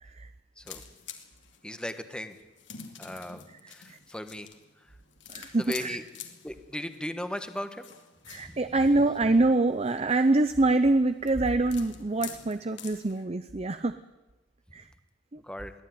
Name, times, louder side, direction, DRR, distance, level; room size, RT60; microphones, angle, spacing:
sound 1, 0.6-13.2, left 8 dB, 65° left, 2.4 m, -48 dB
voice 1, 1.6-2.4 3.0-4.5 5.3-6.0 6.4-7.9 8.4-8.6 15.4-15.7, left 1 dB, 5° left, 8 dB, 1.3 m, -37 dB
voice 2, 5.3-6.0 8.3-14.0 14.7-14.9 15.3-15.4, right 2 dB, 30° right, 10 dB, 0.6 m, -25 dB
23.0 x 15.5 x 9.5 m, 1.1 s
head